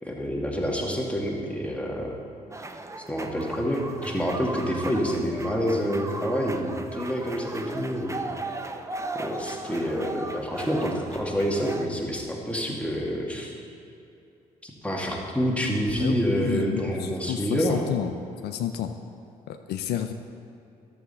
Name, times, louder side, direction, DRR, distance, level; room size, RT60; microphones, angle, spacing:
voice 1, 0.0-2.2 3.1-8.2 9.2-13.5 14.6-17.8, equal, 5° left, -1 dB, 1.9 m, -27 dB
sound 1, 2.5-11.9, right 2 dB, 15° right, 0.7 m, -37 dB
voice 2, 16.0-18.1 18.4-18.9 19.5-20.1, left 10 dB, 70° left, 7 dB, 0.4 m, -31 dB
11.5 x 7.1 x 4.2 m, 2.6 s
hypercardioid pair, 45°, 17 cm